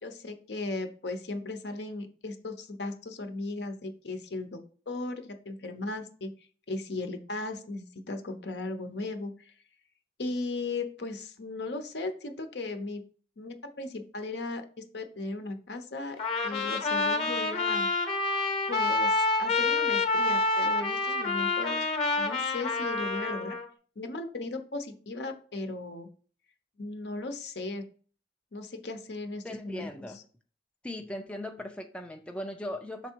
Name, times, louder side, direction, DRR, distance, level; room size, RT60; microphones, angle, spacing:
voice 1, 0.0-6.3 6.7-9.5 10.2-13.1 13.4-17.9 18.7-21.9 22.2-23.6 24.0-26.1 26.8-27.8 28.5-29.9, left 2 dB, 70° left, 7 dB, 0.8 m, -37 dB
Trumpet, 16.2-23.7, left 3 dB, 30° left, 0.9 m, -28 dB
voice 2, 29.4-30.2 30.8-33.1, left 1 dB, 5° left, 3 dB, 0.4 m, -38 dB
6.0 x 3.6 x 4.5 m, 0.42 s
head